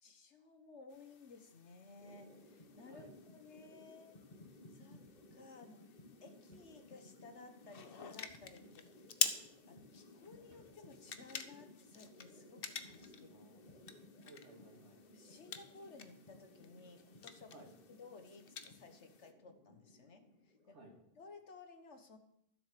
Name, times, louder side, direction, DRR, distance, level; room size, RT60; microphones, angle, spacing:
voice 1, 0.0-4.2 4.7-5.0 5.3-9.1 9.7-13.3 15.1-17.5 17.9-20.8 21.1-22.2, left 3 dB, 70° left, 7 dB, 1.6 m, -57 dB
sound 1, 0.9-19.3, left 6 dB, 55° left, 1.0 m, -47 dB
sound 2, 2.0-21.5, left 2 dB, 35° left, 1.7 m, -60 dB
sound 3, 5.1-5.4 5.7-5.8 6.5-6.8 8.3-8.6 9.3-9.5 10.5-10.8 11.6-11.8 12.8-13.2, right 1 dB, 50° right, 2.0 m, -71 dB
voice 2, 13.3-13.8 14.2-15.0 17.5-17.7 20.7-21.0, right 2 dB, 65° right, 1 dB, 2.7 m, -59 dB
13.0 x 7.7 x 6.8 m, 0.74 s
omnidirectional pair, 1.3 m